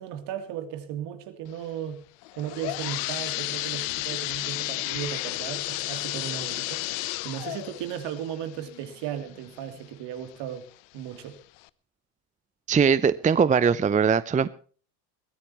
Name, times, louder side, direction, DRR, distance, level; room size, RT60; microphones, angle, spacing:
voice 1, 0.0-2.0 2.4-10.7 10.9-11.4, right 10 dB, 60° right, 3.2 m, -36 dB
sound 1, 2.2-9.8 10.3-10.4 11.1-11.2 11.6-11.7, left 22 dB, 65° left, 0.9 m, -33 dB
voice 2, 12.7-14.5, right 6 dB, 15° right, 0.6 m, -21 dB
22.5 x 14.5 x 3.1 m
hypercardioid pair, 85°, 47 cm